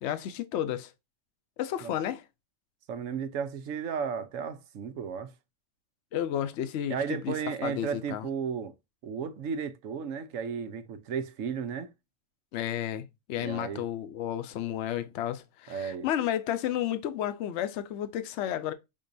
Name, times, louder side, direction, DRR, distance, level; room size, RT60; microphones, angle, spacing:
voice 1, 0.0-0.9 1.6-2.2 6.1-8.3 12.5-18.7, left 11 dB, 65° left, 0.9 m, -32 dB
voice 2, 2.9-5.3 6.9-8.7 9.0-11.9 13.4-13.8 15.7-16.1, right 7 dB, 85° right, 1.1 m, -34 dB
5.3 x 3.7 x 2.6 m
omnidirectional pair, 1.3 m